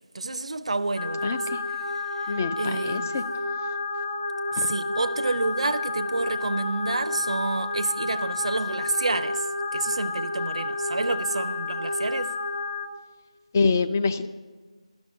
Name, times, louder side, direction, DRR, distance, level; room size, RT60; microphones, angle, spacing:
voice 1, 0.1-1.4 2.2-3.1 4.5-9.5 9.7-12.3, right 3 dB, 70° right, 0.5 m, -29 dB
sound 1, 1.0-12.9, left 3 dB, 85° left, 1.8 m, -30 dB
voice 2, 1.2-1.6 2.3-3.2 4.6-4.7 13.5-14.3, left 4 dB, 25° left, 0.3 m, -25 dB
12.5 x 5.2 x 8.5 m
figure-of-eight pair, 170°, 3 cm